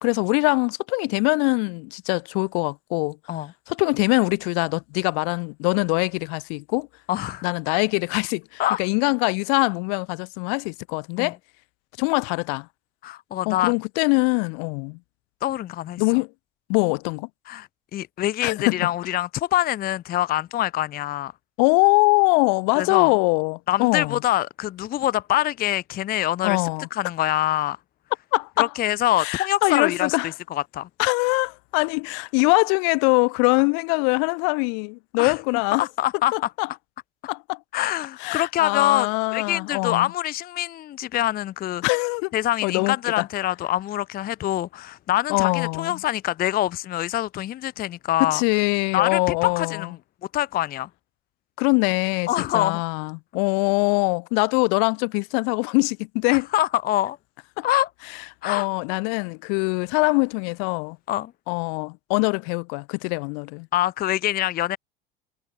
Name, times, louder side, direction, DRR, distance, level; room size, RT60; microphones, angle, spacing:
voice 1, 0.0-3.2 3.7-6.9 7.4-11.4 12.0-12.7 13.5-15.0 16.0-16.3 16.7-17.3 18.4-18.9 21.6-24.2 26.4-26.9 28.3-28.7 29.2-30.3 31.0-35.9 36.3-36.7 37.3-37.6 38.2-40.1 41.8-42.3 42.6-43.3 45.3-46.0 48.3-49.9 51.6-52.3 52.5-56.5 57.6-57.7 58.4-61.0 61.5-63.7, left 40 dB or more, 55° left, 0.9 m, -23 dB
voice 2, 7.1-7.4 8.6-8.8 11.2-11.3 13.0-13.7 15.4-16.0 17.5-21.3 22.8-23.1 23.7-27.8 28.6-30.2 30.5-30.9 35.2-35.3 35.8-36.3 37.7-41.8 42.3-48.4 48.9-50.0 50.3-50.9 52.3-52.8 56.3-57.2 57.6-57.9 58.4-58.7 61.1-61.3 63.7-64.8, left 14 dB, 30° left, 0.6 m, -25 dB
figure-of-eight pair, 70°, 29 cm